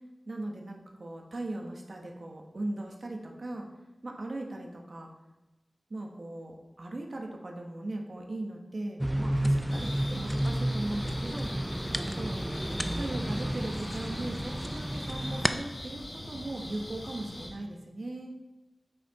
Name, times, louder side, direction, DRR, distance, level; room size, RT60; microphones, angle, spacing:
voice 1, 0.3-3.7 4.0-5.1 5.9-12.4 12.9-18.3, right 2 dB, 65° right, 1 dB, 1.3 m, -38 dB
sound 1, 9.0-15.5, right 1 dB, 15° right, 0.5 m, -31 dB
sound 2, 9.7-17.5, left 1 dB, 75° left, 1.9 m, -41 dB
8.4 x 5.8 x 4.1 m, 1.1 s
wide cardioid pair, 65°, 0 cm